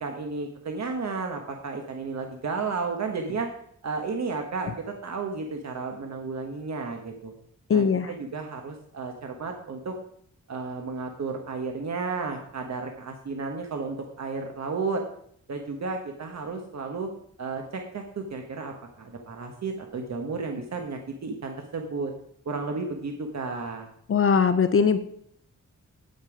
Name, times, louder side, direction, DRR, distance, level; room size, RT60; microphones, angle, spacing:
voice 1, 0.0-3.5 3.8-7.3 7.7-10.0 10.5-15.0 15.5-17.1 17.4-22.1 22.4-23.9, right 4 dB, 60° right, 3 dB, 1.3 m, -33 dB
voice 2, 7.7-8.1 24.1-25.0, left 6 dB, 45° left, 11 dB, 0.6 m, -20 dB
9.4 x 9.0 x 5.0 m, 0.65 s
wide cardioid pair, 150°, 30 cm